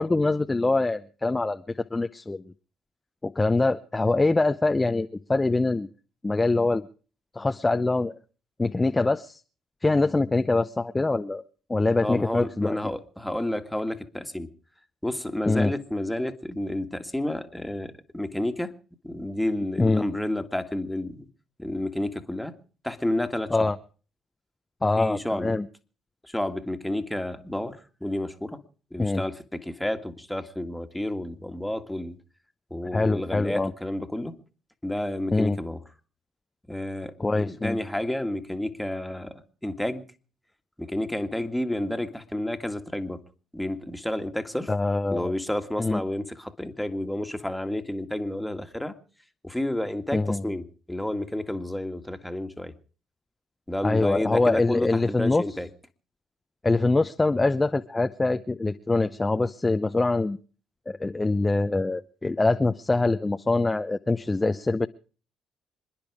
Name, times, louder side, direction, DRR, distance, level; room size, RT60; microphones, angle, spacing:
voice 1, 0.0-1.6 1.9-2.4 3.2-5.9 6.2-6.9 7.3-8.1 8.6-9.4 9.8-11.4 11.7-12.8 15.5-15.7 19.8-20.0 23.5-23.8 24.8-25.7 29.0-29.2 32.9-33.7 35.3-35.6 37.2-37.8 44.7-45.3 45.8-46.0 50.1-50.4 53.8-55.4 56.6-60.4 60.9-64.9, left 3 dB, 20° left, 0.7 m, -24 dB
voice 2, 12.0-14.5 15.0-18.7 19.0-21.3 21.6-22.5 22.8-23.7 25.0-25.5 26.2-28.6 28.9-32.2 32.7-34.3 34.8-35.8 36.7-40.0 40.8-43.2 43.5-44.7 45.1-48.9 49.4-52.7 53.7-55.7, left 1 dB, 5° left, 2.0 m, -30 dB
27.0 x 10.5 x 4.9 m
hypercardioid pair, 60°, 0 cm